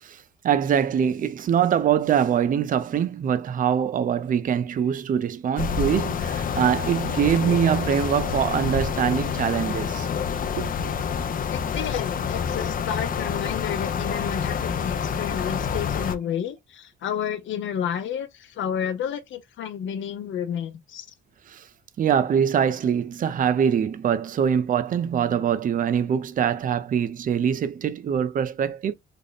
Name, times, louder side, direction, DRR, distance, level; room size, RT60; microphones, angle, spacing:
voice 1, 0.0-10.1 10.5-10.7 21.5-21.7 22.0-28.9, right 8 dB, 45° right, 0.5 m, -23 dB
sound 1, 5.6-16.1, left 7 dB, 45° left, 0.5 m, -27 dB
voice 2, 11.5-21.1, left 8 dB, 75° left, 0.8 m, -31 dB
3.5 x 2.1 x 3.9 m
cardioid pair, 90°, 20 cm